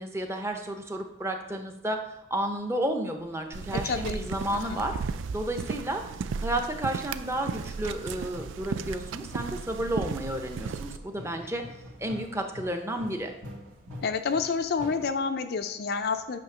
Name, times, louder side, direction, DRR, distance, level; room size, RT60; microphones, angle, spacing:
voice 1, 0.0-5.0 5.3-6.1 6.4-11.6 12.0-13.3, right 1 dB, 15° right, 4 dB, 0.6 m, -32 dB
sound 1, 3.2-15.1, equal, 85° right, 1.8 m, -48 dB
sound 2, 3.5-11.0, right 5 dB, 65° right, 0.3 m, -35 dB
voice 2, 3.8-4.2 4.5-4.8 14.0-16.4, left 5 dB, 50° left, 8 dB, 0.4 m, -29 dB
8.4 x 2.9 x 5.9 m, 0.98 s
head